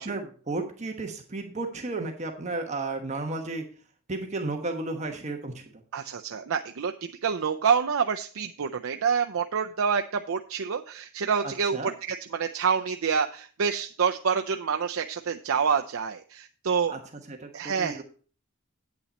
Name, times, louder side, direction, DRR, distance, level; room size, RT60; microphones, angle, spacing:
voice 1, 0.0-3.6 4.1-5.6 11.4-11.9 16.9-17.0 17.3-18.0, right 2 dB, 35° right, 3 dB, 1.2 m, -33 dB
voice 2, 5.9-16.9 17.5-18.0, right 6 dB, 70° right, 4 dB, 0.5 m, -27 dB
8.7 x 8.5 x 4.1 m, 0.40 s
head